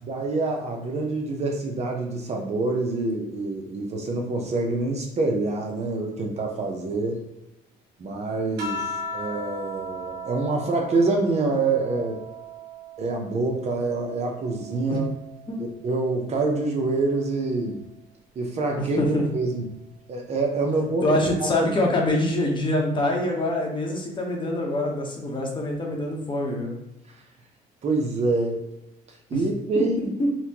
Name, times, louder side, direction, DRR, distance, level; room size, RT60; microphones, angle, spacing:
voice 1, 0.0-7.2 8.0-8.9 9.1-12.2 13.0-15.1 15.6-17.8 18.4-19.6 20.1-21.7 27.8-28.6 29.3-30.1, right 3 dB, 40° right, 1 dB, 0.7 m, -26 dB
sound 1, 8.6-13.4 13.8-15.6 16.8-17.3, equal, 75° right, 0.9 m, -37 dB
voice 2, 18.8-19.2 21.0-26.7 29.3-29.4 30.2-30.3, left 1 dB, 30° left, 0 dB, 0.9 m, -25 dB
4.2 x 2.2 x 2.8 m, 0.92 s
cardioid pair, 110°, 17 cm